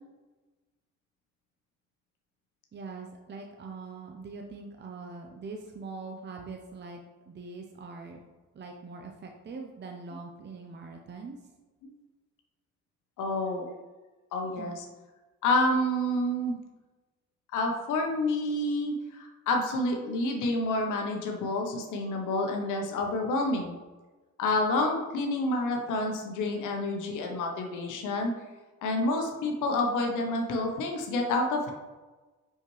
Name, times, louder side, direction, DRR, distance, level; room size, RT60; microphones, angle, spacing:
voice 1, 2.7-7.0 7.3-8.2 8.5-11.4 14.6-14.8, right 4 dB, 35° right, 2 dB, 0.7 m, -42 dB
voice 2, 13.2-13.6 14.3-14.8 15.4-16.5 17.5-23.8 24.4-28.3 28.8-31.7, left 2 dB, 85° left, 2 dB, 0.9 m, -28 dB
5.7 x 5.5 x 3.1 m, 1.2 s
cardioid pair, 90°, 30 cm